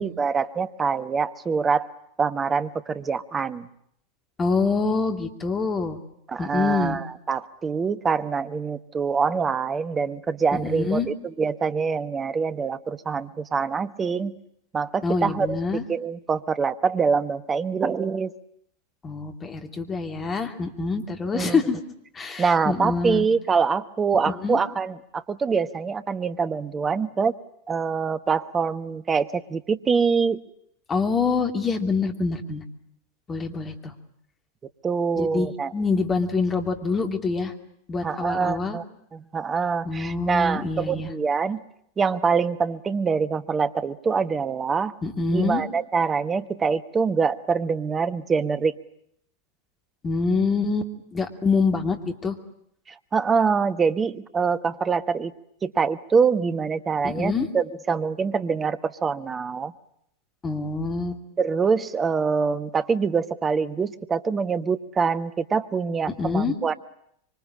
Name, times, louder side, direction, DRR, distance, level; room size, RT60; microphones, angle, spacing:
voice 1, 0.0-1.9 2.2-3.7 6.3-14.3 14.7-15.6 15.9-18.3 21.3-21.6 22.4-27.3 27.7-30.4 34.8-35.7 38.0-38.8 39.1-41.6 42.0-44.9 45.3-48.7 52.9-55.3 55.6-59.7 61.4-66.7, right 5 dB, 20° right, 12 dB, 1.3 m, -25 dB
voice 2, 4.4-6.0 6.4-7.0 10.5-11.1 15.0-15.8 19.0-21.8 22.1-23.3 24.1-24.6 30.9-32.6 33.3-33.9 35.2-37.5 37.9-38.8 39.8-41.1 45.0-45.6 50.0-52.4 57.0-57.5 60.4-61.2 66.2-66.5, left 4 dB, 20° left, 5 dB, 3.0 m, -25 dB
25.5 x 24.5 x 8.9 m, 0.70 s
figure-of-eight pair, 90°, 0 cm